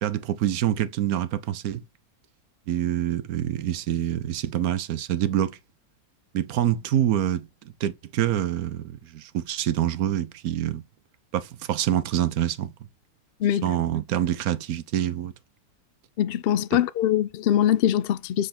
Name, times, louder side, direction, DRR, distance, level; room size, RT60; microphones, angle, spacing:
voice 1, 0.0-1.8 2.7-5.6 6.3-7.5 7.8-10.8 11.3-12.7 13.6-15.3, right 11 dB, 80° right, 1.1 m, -26 dB
voice 2, 16.2-18.5, left 11 dB, 70° left, 0.5 m, -22 dB
7.6 x 4.7 x 4.3 m
omnidirectional pair, 1.5 m